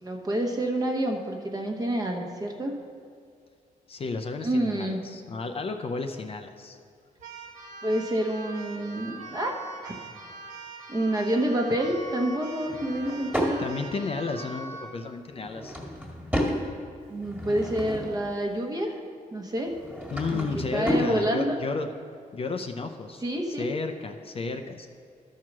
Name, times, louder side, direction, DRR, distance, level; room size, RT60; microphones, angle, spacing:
voice 1, 0.0-2.8 4.4-5.0 7.8-9.5 9.8-10.0 10.9-13.6 17.1-18.9 19.3-19.8 20.3-21.6 23.2-23.7, right 1 dB, 25° right, 2 dB, 1.1 m, -28 dB
voice 2, 3.9-6.8 13.6-15.8 20.1-21.9 22.3-23.3 23.6-24.9, left 4 dB, 40° left, 6 dB, 0.5 m, -33 dB
Keyboard (musical), 7.2-15.0, right 2 dB, 55° right, 1.4 m, -42 dB
Drawer open or close / Wood, 12.6-13.6 15.3-16.6 17.1-18.3 19.6-21.1, equal, 10° right, 1.8 m, -31 dB
12.5 x 4.6 x 6.0 m, 2.2 s
wide cardioid pair, 155°, 15 cm